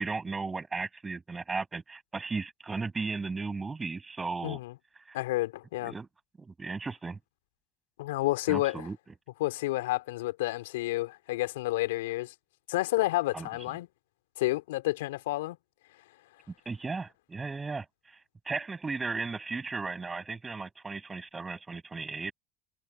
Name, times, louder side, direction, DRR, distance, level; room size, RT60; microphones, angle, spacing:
voice 1, 0.0-4.6 5.1-5.2 5.8-6.1 6.4-7.2 8.5-9.0 13.3-13.5 16.5-18.2 18.4-22.3, right 4 dB, 20° right, 8.0 m, -35 dB
voice 2, 4.4-4.7 5.1-5.9 8.0-8.9 9.4-12.3 12.7-13.9 14.4-15.6, left 18 dB, 80° left, 3.4 m, -30 dB
hypercardioid pair, 70°, 0 cm